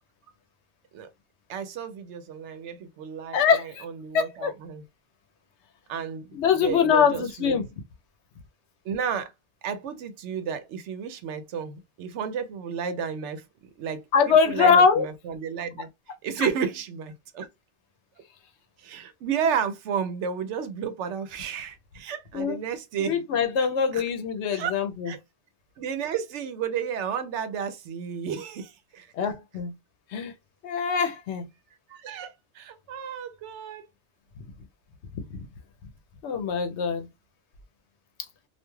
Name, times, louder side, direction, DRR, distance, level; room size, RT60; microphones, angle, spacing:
voice 1, 1.5-3.4 3.8-4.8 5.9-6.3 6.6-7.6 8.8-9.3 9.6-13.4 13.8-15.9 16.2-17.5 18.8-23.2 23.9-24.0 24.5-24.7 25.1-25.2 25.8-29.1 31.9-33.8, right 7 dB, 85° right, 0.9 m, -32 dB
voice 2, 3.3-3.8 4.1-4.5 6.3-7.7 14.1-15.1 16.4-16.5 22.3-22.6 23.0-25.1 29.1-29.7 30.1-30.3 30.6-31.5 35.3-35.5 36.2-37.1, left 6 dB, 80° left, 0.9 m, -23 dB
2.4 x 2.3 x 3.0 m
omnidirectional pair, 1.2 m